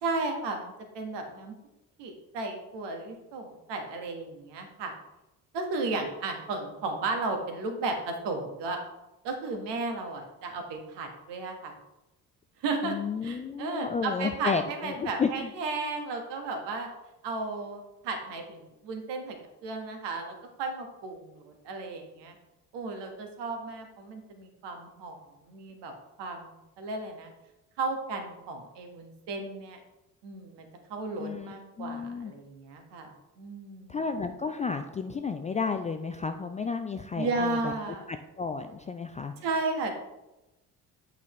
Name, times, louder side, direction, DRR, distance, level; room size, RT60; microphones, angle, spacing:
voice 1, 0.0-1.5 2.0-4.9 5.5-8.8 9.2-11.7 12.6-12.9 13.2-16.9 17.2-19.4 19.6-22.3 22.7-25.9 26.2-27.3 27.8-29.8 30.2-34.0 37.1-38.0 39.4-39.9, right 3 dB, 60° right, 4 dB, 1.5 m, -34 dB
voice 2, 12.8-15.3 31.2-32.3 33.9-37.7 38.1-39.3, left 5 dB, 15° left, 7 dB, 0.3 m, -32 dB
8.3 x 5.3 x 3.1 m, 0.96 s
figure-of-eight pair, 50°, 47 cm